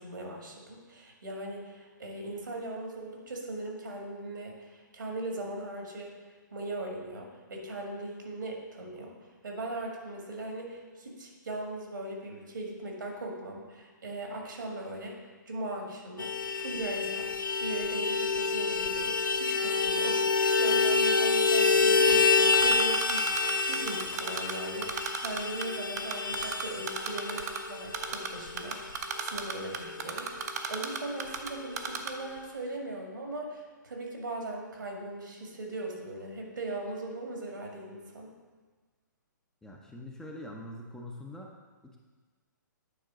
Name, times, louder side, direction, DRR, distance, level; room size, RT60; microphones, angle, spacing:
voice 1, 0.0-6.2 6.5-9.2 9.4-15.2 15.5-17.3 17.6-28.9 29.2-38.3, right 2 dB, 75° right, 0 dB, 1.9 m, -39 dB
Vehicle horn car horn honking, 16.2-30.1 30.4-30.5 30.8-31.0 31.2-31.9, left 4 dB, 90° left, 0.5 m, -28 dB
Typing, 22.5-24.5 24.8-25.7 26.0-27.6 27.9-28.3 28.6-31.5 31.8-32.1, right 7 dB, 55° right, 0.8 m, -33 dB
voice 2, 39.6-41.5 41.8-42.0, left 1 dB, 5° left, -1 dB, 0.6 m, -43 dB
9.2 x 3.7 x 5.0 m, 1.4 s
figure-of-eight pair, 130°, 11 cm